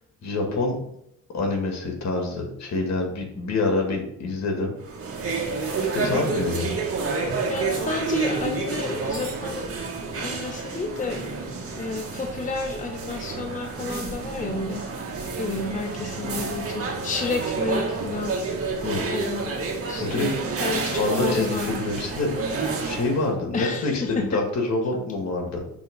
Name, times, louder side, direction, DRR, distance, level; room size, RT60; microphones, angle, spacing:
voice 1, 0.2-0.8 1.3-4.7 5.9-6.8 18.8-19.0 20.0-25.6, left 2 dB, 60° left, 1 dB, 2.1 m, -27 dB
sound 1, 4.8-23.3, right 4 dB, 50° right, 1.5 m, -29 dB
voice 2, 7.5-9.7 10.2-11.4 11.7-14.8 15.4-18.3 19.1-19.6 19.9-20.3 20.6-21.8 23.5-24.4, left 3 dB, 25° left, 4 dB, 0.7 m, -31 dB
6.1 x 3.7 x 5.4 m, 0.74 s
cardioid pair, 90°, 30 cm